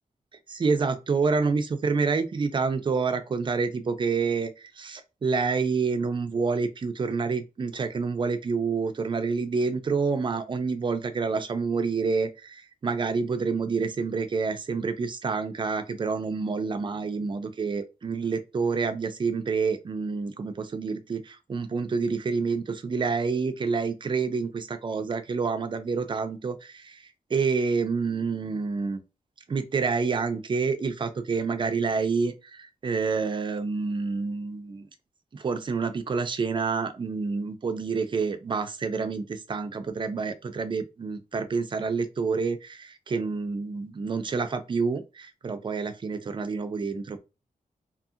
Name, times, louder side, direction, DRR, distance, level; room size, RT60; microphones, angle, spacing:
voice 1, 0.5-27.0 27.3-29.0 29.5-34.9 35.3-47.2, right 4 dB, 35° right, 0.4 m, -28 dB
2.7 x 2.7 x 2.4 m
wide cardioid pair, 170°, 15 cm